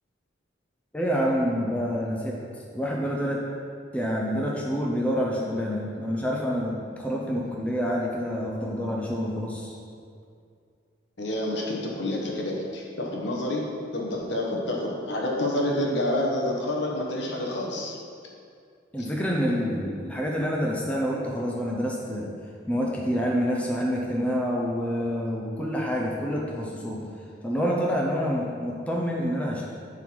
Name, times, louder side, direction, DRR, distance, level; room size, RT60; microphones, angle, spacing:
voice 1, 0.9-2.4 2.7-3.4 3.9-9.7 18.9-22.3 22.7-27.0 27.4-29.6, equal, 5° left, -3 dB, 0.7 m, -27 dB
voice 2, 11.2-13.7 13.9-18.0, left 1 dB, 65° left, -2 dB, 1.3 m, -28 dB
11.0 x 4.0 x 4.7 m, 2.3 s
head